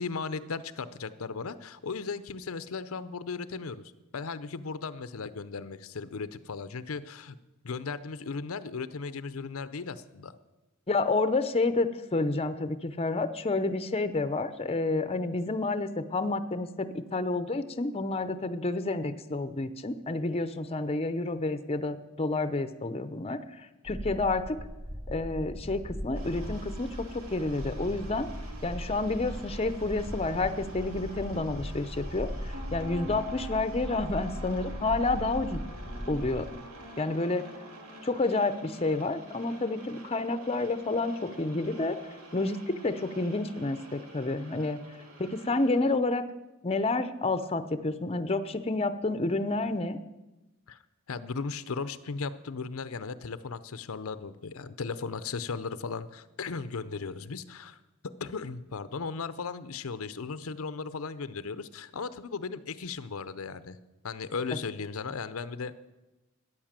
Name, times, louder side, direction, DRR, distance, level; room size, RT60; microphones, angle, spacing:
voice 1, 0.0-3.8 4.1-7.4 7.6-10.4 50.7-50.8 51.1-57.8 58.2-63.8 64.0-65.7, left 4 dB, 75° left, 13 dB, 0.6 m, -36 dB
voice 2, 10.9-23.4 23.8-24.6 25.1-28.3 28.6-32.3 32.7-35.6 36.1-36.5 37.0-37.4 38.0-42.0 42.3-44.8 45.2-46.2 46.6-50.0, left 2 dB, 30° left, 11 dB, 0.7 m, -29 dB
sound 1, 23.8-36.5, equal, 20° right, 2.1 m, -39 dB
sound 2, 26.1-45.8, right 1 dB, 80° right, 2.6 m, -47 dB
13.5 x 9.8 x 7.4 m, 1.0 s
head